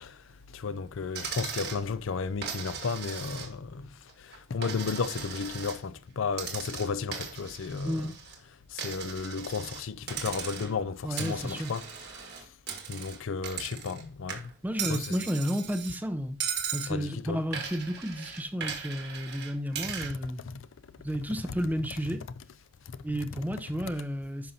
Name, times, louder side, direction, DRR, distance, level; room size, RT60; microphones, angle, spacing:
voice 1, 0.0-8.1 8.7-12.5 12.9-14.5 14.9-15.2 16.9-17.4 20.0-20.7 21.4-21.5 22.9-23.0 23.3-23.4, left 5 dB, 75° left, 0.5 m, -34 dB
Coin (dropping), 1.1-1.8 2.4-3.7 4.1-5.8 6.3-8.4 8.8-9.8 10.1-10.8 11.2-14.0 14.3-16.0 16.4-16.9 17.5-20.1, right 7 dB, 50° right, 1.6 m, -38 dB
voice 2, 11.0-11.7 14.6-16.4 16.7-20.4 21.0-22.2 23.0-24.5, equal, 10° right, 0.6 m, -32 dB
10.5 x 5.6 x 2.7 m
head